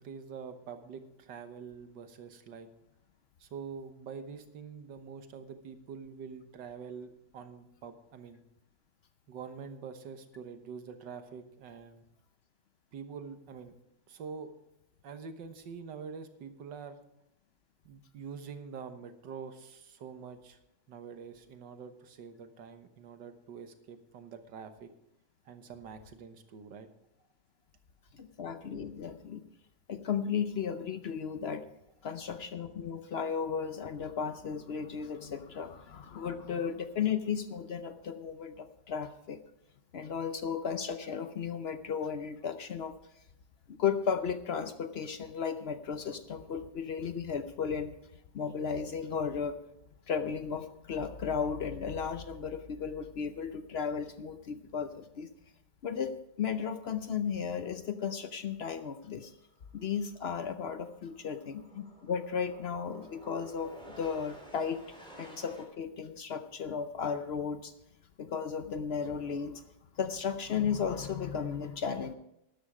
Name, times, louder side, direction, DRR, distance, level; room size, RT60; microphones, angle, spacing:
voice 1, 0.0-2.7 3.4-8.4 9.3-12.1 12.9-13.7 14.1-14.5 15.0-17.0 17.9-20.6 20.9-24.9 25.5-26.9 29.3-29.4, right 6 dB, 75° right, 8 dB, 1.8 m, -45 dB
voice 2, 28.1-29.4 29.9-31.7 32.0-39.4 39.9-42.9 43.7-48.0 48.3-49.6 50.1-55.3 55.8-56.1 56.4-59.3 59.7-64.8 65.2-67.7 68.2-69.6 70.0-72.1, left 7 dB, 70° left, 9 dB, 0.6 m, -35 dB
sound 1, 58.8-59.1 59.3-65.6, right 1 dB, 5° left, 3.3 m, -53 dB
13.0 x 11.0 x 4.9 m, 0.82 s
omnidirectional pair, 1.9 m